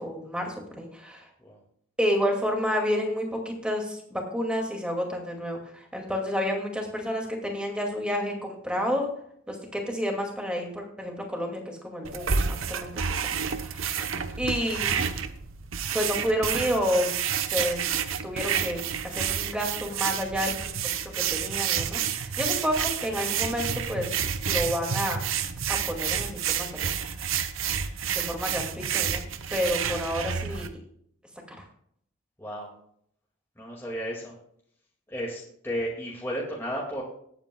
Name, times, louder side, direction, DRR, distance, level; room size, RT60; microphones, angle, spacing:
voice 1, 0.0-1.3 2.0-9.1 9.5-12.4 12.7-13.1 13.5-14.1 14.4-15.1 15.9-17.2 17.5-17.8 18.2-18.8 19.1-20.7 21.1-24.1 24.5-25.2 25.7-26.9 27.2-27.3 28.1-29.2 29.5-30.7 31.5-31.6, equal, 5° right, 1 dB, 2.2 m, -30 dB
sound 1, 12.0-30.7, right 7 dB, 80° right, 0.9 m, -29 dB
voice 2, 20.1-20.4 32.4-32.7 33.6-34.4 35.1-37.0, equal, 10° left, -3 dB, 2.1 m, -34 dB
19.5 x 9.1 x 2.3 m, 0.68 s
head